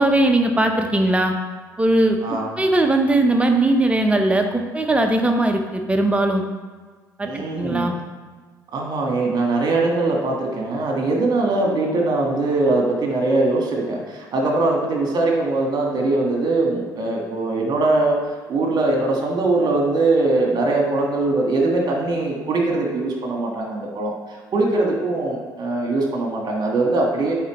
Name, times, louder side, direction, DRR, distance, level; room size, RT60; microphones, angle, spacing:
voice 1, 0.0-1.3 1.8-6.4 7.2-8.0, right 2 dB, 10° right, 4 dB, 0.8 m, -19 dB
voice 2, 2.2-2.5 7.2-7.9 8.7-18.2 18.5-24.1 24.5-27.3, right 2 dB, 40° right, 0 dB, 1.5 m, -21 dB
9.0 x 3.8 x 3.1 m, 1.4 s
figure-of-eight pair, 55°, 10 cm